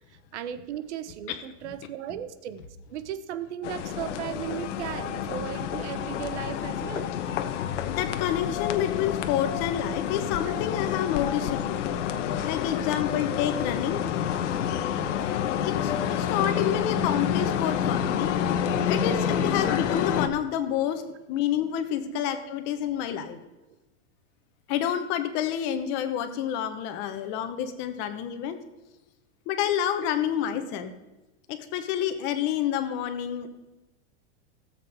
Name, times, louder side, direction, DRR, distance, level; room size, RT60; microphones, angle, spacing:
voice 1, 0.3-7.1 10.5-10.6 22.0-22.2, right 10 dB, 70° right, 12 dB, 1.1 m, -36 dB
sound 1, 3.6-20.3, left 8 dB, 75° left, 1.0 m, -28 dB
voice 2, 7.5-11.9 12.4-14.0 15.6-18.3 18.9-21.0 21.3-23.4 24.7-28.6 29.5-30.9 31.5-33.6, left 10 dB, 30° left, 9 dB, 1.0 m, -28 dB
17.5 x 7.7 x 3.5 m, 1.1 s
supercardioid pair, 170°, 36 cm